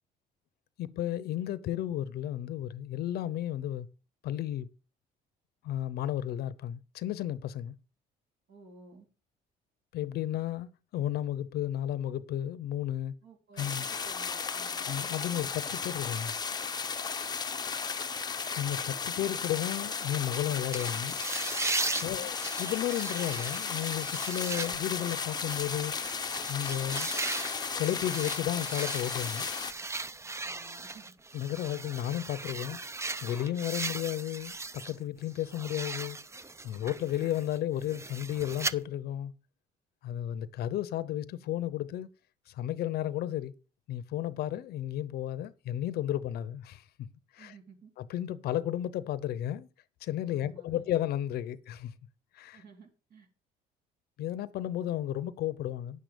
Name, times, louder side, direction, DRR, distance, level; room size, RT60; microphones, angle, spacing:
voice 1, 0.8-3.9 4.2-4.7 5.6-7.7 9.9-13.1 13.6-13.8 14.8-16.3 18.5-21.1 22.0-25.9 26.5-27.1 27.8-29.5 31.3-32.8 33.2-36.2 36.6-39.3 40.0-42.1 42.5-43.5 43.9-47.1 47.3-47.5 48.0-49.7 50.0-51.9 52.3-52.6 54.2-56.0, left 12 dB, 70° left, 0.8 m, -33 dB
voice 2, 8.5-9.1 13.2-14.9 21.9-22.3 30.4-31.0 47.4-47.9 50.3-50.8 52.5-53.3, right 3 dB, 60° right, 3.6 m, -54 dB
sound 1, 13.6-29.7, left 5 dB, 25° left, 0.7 m, -35 dB
sound 2, 20.7-35.0 35.3-38.7, right 3 dB, 15° right, 0.5 m, -38 dB
9.7 x 7.7 x 5.2 m
cardioid pair, 110°, 17 cm